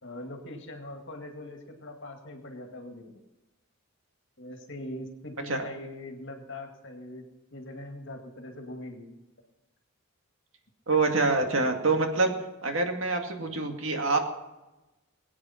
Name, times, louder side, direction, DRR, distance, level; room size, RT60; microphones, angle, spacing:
voice 1, 0.0-3.2 4.4-7.3 7.5-9.2, left 1 dB, 55° left, 4 dB, 2.1 m, -41 dB
voice 2, 10.9-12.3 12.6-14.2, right 3 dB, 65° right, 4 dB, 2.2 m, -25 dB
21.5 x 8.7 x 5.8 m, 1.0 s
head